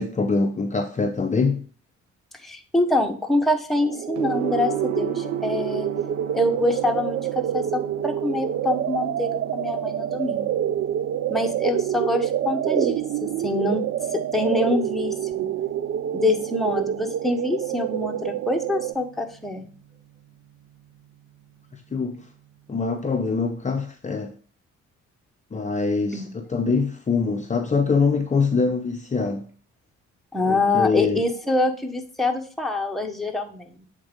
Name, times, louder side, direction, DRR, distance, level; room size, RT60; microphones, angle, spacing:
voice 1, 0.0-1.7 21.7-22.3 22.7-24.3 25.5-29.5 30.5-31.2, left 4 dB, 25° left, 0.6 m, -24 dB
voice 2, 2.4-5.9 6.3-10.6 11.3-13.8 14.1-15.5 16.1-19.7 26.1-26.3 30.3-33.7, left 2 dB, ahead, 1.1 m, -25 dB
sound 1, 3.8-18.9, right 10 dB, 50° right, 0.4 m, -27 dB
Gong, 4.1-23.2, right 7 dB, 85° right, 1.0 m, -40 dB
7.7 x 3.7 x 5.1 m
cardioid pair, 90°, 30 cm